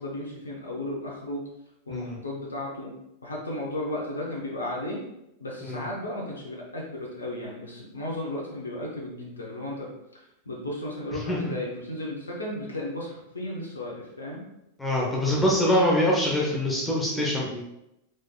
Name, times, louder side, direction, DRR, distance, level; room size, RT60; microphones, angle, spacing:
voice 1, 0.0-1.4 1.9-2.9 3.2-5.0 5.4-9.9 10.5-14.4, left 1 dB, 75° left, -2 dB, 0.9 m, -34 dB
voice 2, 11.1-11.5 14.8-17.6, left 1 dB, 10° left, -4 dB, 1.1 m, -24 dB
4.8 x 4.2 x 2.3 m, 0.85 s
figure-of-eight pair, 90°, 0 cm